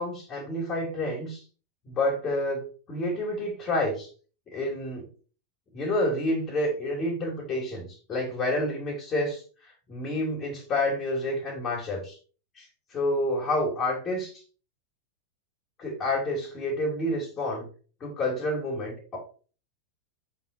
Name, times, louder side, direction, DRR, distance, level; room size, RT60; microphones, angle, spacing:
voice 1, 0.0-1.4 1.8-4.1 4.5-5.0 5.7-9.4 9.9-12.2 12.6-12.7 12.9-14.3 15.8-17.6 18.0-19.2, left 1 dB, 30° left, -3 dB, 3.1 m, -29 dB
7.6 x 4.1 x 4.4 m, 0.38 s
figure-of-eight pair, 90°, 0 cm